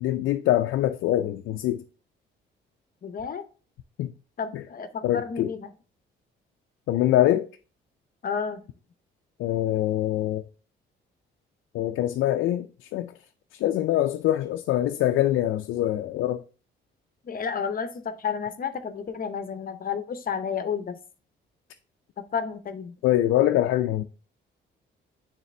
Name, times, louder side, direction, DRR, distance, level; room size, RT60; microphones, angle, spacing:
voice 1, 0.0-1.8 4.0-4.1 4.5-4.6 5.0-5.5 6.9-7.5 9.4-10.4 11.7-13.1 13.5-16.4 23.0-24.0, left 13 dB, 80° left, 0.4 m, -24 dB
voice 2, 3.0-3.4 4.4-5.7 8.2-8.6 17.2-21.0 22.3-22.9, left 6 dB, 45° left, 0.7 m, -31 dB
9.2 x 3.3 x 3.3 m
cardioid pair, 90°, 20 cm